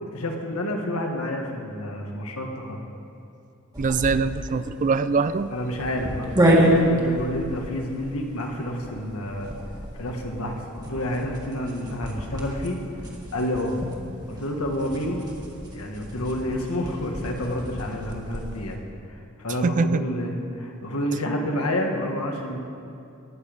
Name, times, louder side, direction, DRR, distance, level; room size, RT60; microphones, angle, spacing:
voice 1, 0.0-2.8 5.5-6.3 6.6-9.5 9.9-12.8 13.3-13.8 14.3-15.2 15.7-18.8 19.1-22.6, left 1 dB, 75° left, 2 dB, 1.7 m, -29 dB
sound 1, 3.7-18.7, equal, 20° right, 1.8 m, -28 dB
voice 2, 3.8-5.5 19.6-20.0, right 4 dB, 35° right, 13 dB, 0.4 m, -23 dB
19.5 x 8.3 x 5.2 m, 2.6 s
head